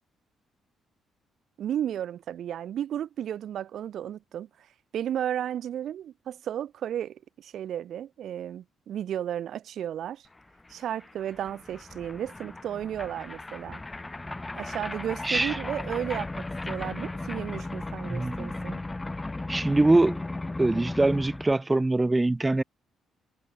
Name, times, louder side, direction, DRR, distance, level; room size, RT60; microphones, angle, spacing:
voice 1, 1.6-10.3 10.7-13.8 14.6-18.8, right 10 dB, 70° right, 3.2 m, -34 dB
sound 1, 10.4-10.5 10.6-21.5, left 2 dB, 15° left, 3.2 m, -36 dB
voice 2, 15.2-15.6 18.1-18.5 19.5-20.2 20.6-22.6, right 2 dB, 15° right, 1.9 m, -23 dB
cardioid pair, 90°, 0 cm